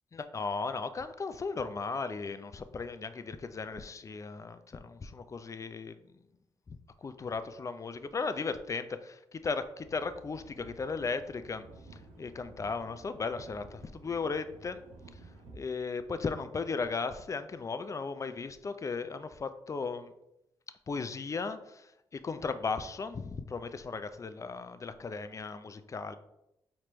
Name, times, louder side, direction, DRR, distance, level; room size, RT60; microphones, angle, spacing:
voice 1, 0.1-6.0 6.7-11.7 11.9-14.8 15.1-15.2 15.5-20.1 20.9-26.2, left 4 dB, 35° left, 11 dB, 0.4 m, -36 dB
sound 1, 9.8-15.5, right 3 dB, 75° right, 0.7 m, -53 dB
4.4 x 3.2 x 3.0 m, 0.86 s
supercardioid pair, 55°, 10 cm